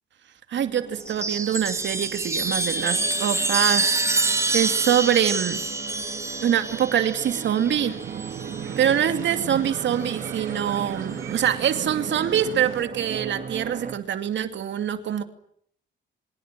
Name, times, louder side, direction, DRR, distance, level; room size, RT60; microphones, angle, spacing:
sound 1, 0.5-13.9, right 6 dB, 40° right, 3.3 m, -38 dB
voice 1, 0.5-4.0 4.5-5.6 6.4-7.9 8.8-15.2, right 9 dB, 65° right, 8 dB, 2.6 m, -24 dB
Chime, 1.0-8.8 10.0-10.6, right 2 dB, 15° right, 5.2 m, -27 dB
sound 2, 7.4-12.8, right 11 dB, 85° right, 2.4 m, -37 dB
28.5 x 25.5 x 7.7 m, 0.67 s
cardioid pair, 90°, 20 cm